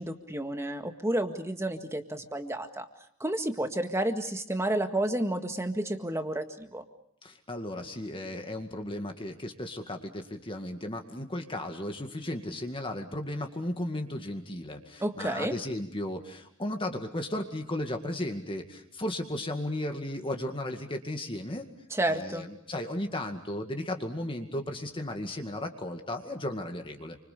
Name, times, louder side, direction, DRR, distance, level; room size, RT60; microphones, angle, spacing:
voice 1, 0.0-2.9 3.2-6.8 15.0-15.5 21.9-22.5, right 1 dB, 15° right, 7 dB, 1.8 m, -31 dB
voice 2, 7.2-21.7 22.1-27.2, left 1 dB, 25° left, 4 dB, 2.1 m, -35 dB
29.0 x 25.5 x 6.8 m, 0.70 s
head